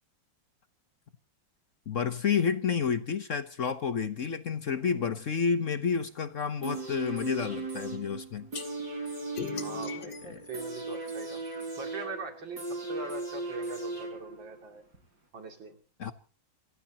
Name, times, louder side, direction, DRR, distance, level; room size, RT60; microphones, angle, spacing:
voice 1, 1.9-8.5 10.2-10.5 16.0-16.1, left 6 dB, 50° left, 1.1 m, -30 dB
voice 2, 4.8-5.2 9.6-11.4 11.8-14.8 15.3-15.8, right 3 dB, 85° right, 3.4 m, -42 dB
sound 1, 6.6-14.6 14.9-15.0, right 3 dB, 55° right, 6.1 m, -37 dB
sound 2, 8.5-8.7 9.4-11.6, left 7 dB, 70° left, 2.4 m, -40 dB
28.5 x 15.5 x 2.9 m
omnidirectional pair, 2.0 m